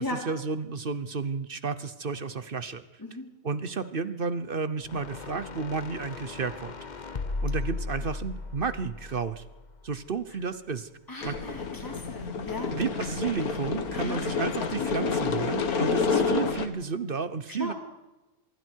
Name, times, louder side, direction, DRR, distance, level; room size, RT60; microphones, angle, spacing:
voice 1, 0.0-2.8 3.4-6.8 7.4-9.4 9.8-10.9 11.1-11.3 12.7-17.7, right 5 dB, 45° right, 13 dB, 1.0 m, -32 dB
voice 2, 3.0-3.3 11.1-12.8 13.9-14.2 17.5-17.7, left 2 dB, 15° left, 2 dB, 3.1 m, -36 dB
sound 1, 4.8-10.1, left 3 dB, 35° left, 1.0 m, -36 dB
sound 2, 11.2-16.7, left 5 dB, 90° left, 1.9 m, -29 dB
25.5 x 22.5 x 4.7 m, 1.0 s
omnidirectional pair, 1.5 m